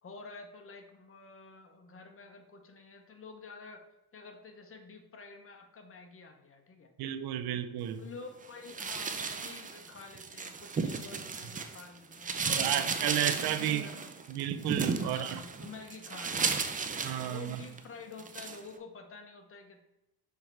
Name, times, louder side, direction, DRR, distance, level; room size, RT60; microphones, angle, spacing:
voice 1, 0.0-3.8 4.1-6.9 8.0-13.0 13.2-14.1 15.0-16.8 17.1-19.8, left 4 dB, 35° left, 5 dB, 1.0 m, -49 dB
voice 2, 7.0-8.0 12.4-13.9 14.3-15.4 17.0-17.6, right 11 dB, 65° right, 11 dB, 0.6 m, -32 dB
sound 1, 8.7-11.8 12.1-17.8 18.2-18.6, right 5 dB, 20° right, 0.5 m, -34 dB
6.4 x 3.4 x 4.6 m, 0.97 s
cardioid pair, 115°, 40 cm